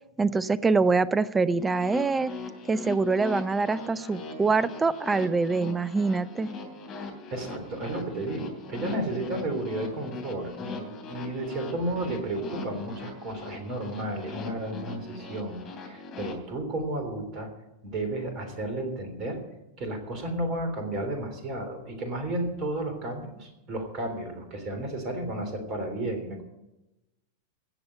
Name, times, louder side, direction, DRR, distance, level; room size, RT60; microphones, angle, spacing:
voice 1, 0.2-2.3 2.7-6.5, right 4 dB, 15° right, 17 dB, 0.4 m, -25 dB
sound 1, 1.6-16.3, left 3 dB, 35° left, 3.2 m, -40 dB
voice 2, 7.3-17.5 17.8-19.4 19.8-26.4, right 1 dB, 35° right, 6 dB, 3.3 m, -33 dB
16.5 x 7.0 x 9.0 m, 0.94 s
figure-of-eight pair, 90°, 0 cm